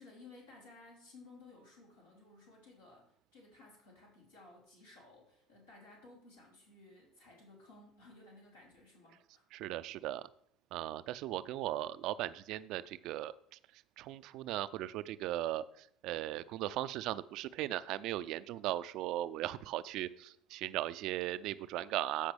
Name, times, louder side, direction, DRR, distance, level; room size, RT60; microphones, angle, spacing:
voice 1, 0.0-9.4, left 2 dB, 80° left, -4 dB, 3.2 m, -57 dB
voice 2, 9.5-10.3 10.7-22.3, right 14 dB, 55° right, 15 dB, 0.4 m, -38 dB
13.5 x 5.1 x 3.4 m, 0.69 s
figure-of-eight pair, 60°, 0 cm